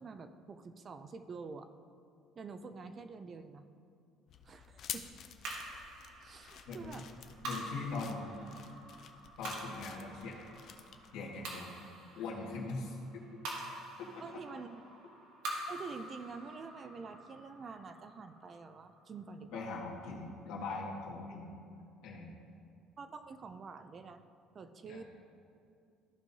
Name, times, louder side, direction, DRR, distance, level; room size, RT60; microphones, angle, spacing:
voice 1, 0.0-1.7 2.4-3.7 4.4-5.1 6.2-7.1 14.2-14.8 15.7-19.8 23.0-24.3 24.5-25.0, right 4 dB, 25° right, 10 dB, 0.3 m, -47 dB
sound 1, 4.3-11.1, left 8 dB, 40° left, 0.4 m, -50 dB
sound 2, 5.4-19.9, right 1 dB, 80° right, 1.7 m, -47 dB
voice 2, 7.4-8.3 9.4-10.5 11.1-11.7 12.1-13.0 14.0-14.1 19.5-21.5 22.0-22.3 24.9-25.0, left 3 dB, 75° left, -3 dB, 1.7 m, -41 dB
14.0 x 5.4 x 2.7 m, 2.5 s
cardioid pair, 175°, 0 cm